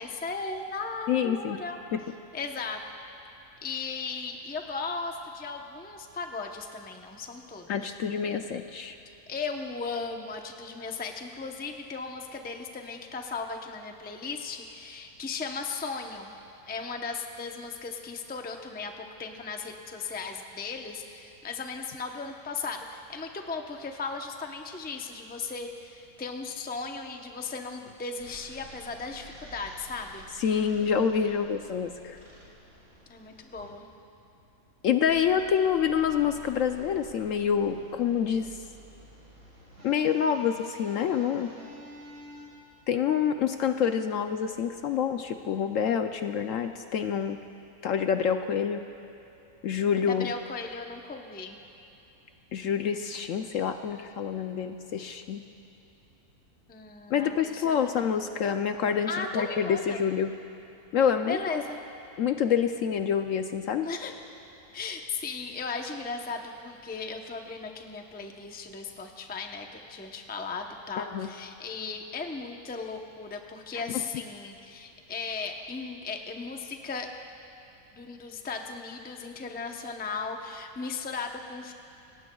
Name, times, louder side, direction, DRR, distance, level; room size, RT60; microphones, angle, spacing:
voice 1, 0.0-1.8 2.3-2.8 3.6-7.9 9.3-16.3 16.7-30.3 33.1-33.9 50.1-51.6 56.7-57.9 59.0-60.0 61.3-61.8 63.8-64.1 64.7-77.1 77.9-81.7, left 4 dB, 10° left, 3 dB, 0.5 m, -36 dB
voice 2, 1.1-1.6 1.9-2.0 7.7-9.0 30.4-32.2 34.8-38.6 39.8-41.5 42.9-47.4 47.8-48.8 49.6-50.3 52.5-55.4 57.1-60.3 60.9-61.6 62.2-63.9 71.0-71.3 73.7-73.8, left 7 dB, 65° left, 7 dB, 0.8 m, -27 dB
sound 1, 28.2-33.7 35.0-42.5, equal, 60° right, 4.4 m, -50 dB
26.0 x 19.0 x 2.3 m, 3.0 s
omnidirectional pair, 1.6 m